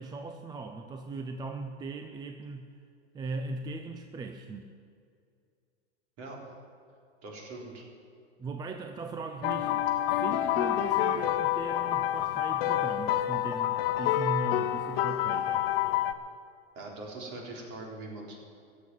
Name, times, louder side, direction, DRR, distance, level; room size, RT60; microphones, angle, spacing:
voice 1, 0.0-2.7 3.1-4.7 8.4-9.9 10.2-15.7, right 3 dB, 10° right, 6 dB, 0.5 m, -38 dB
voice 2, 7.2-7.8 16.8-18.4, right 2 dB, 45° right, -1 dB, 4.1 m, -42 dB
sound 1, 9.4-16.1, left 12 dB, 60° left, 1.0 m, -28 dB
14.5 x 7.3 x 9.8 m, 2.4 s
hypercardioid pair, 125°, 34 cm